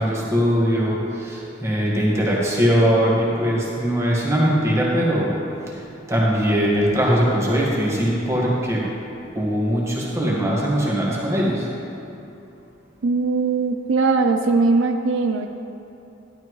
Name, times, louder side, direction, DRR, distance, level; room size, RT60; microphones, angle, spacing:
voice 1, 0.0-5.3 6.1-8.8 9.3-11.7, equal, 15° right, -5 dB, 1.7 m, -20 dB
voice 2, 13.0-15.5, right 3 dB, 75° right, 5 dB, 0.5 m, -20 dB
11.5 x 11.5 x 3.2 m, 2.8 s
head